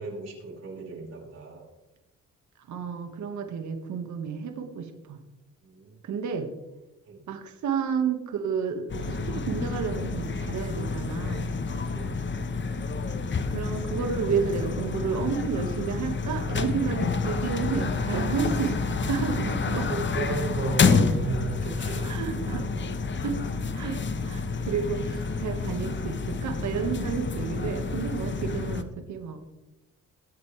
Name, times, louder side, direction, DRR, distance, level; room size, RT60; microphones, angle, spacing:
voice 1, 0.0-1.7 5.6-6.0 7.1-7.3 11.7-12.4 19.7-22.9 27.5-27.7, right 4 dB, 55° right, -4 dB, 5.6 m, -36 dB
voice 2, 2.7-5.2 6.0-6.5 7.3-11.5 13.5-19.9 22.0-22.7 23.2-29.4, right 6 dB, 70° right, 5 dB, 1.9 m, -31 dB
sound 1, 8.9-28.8, left 4 dB, 40° left, 1.2 m, -29 dB
22.5 x 8.4 x 3.4 m, 1.0 s
cardioid pair, 90°, 30 cm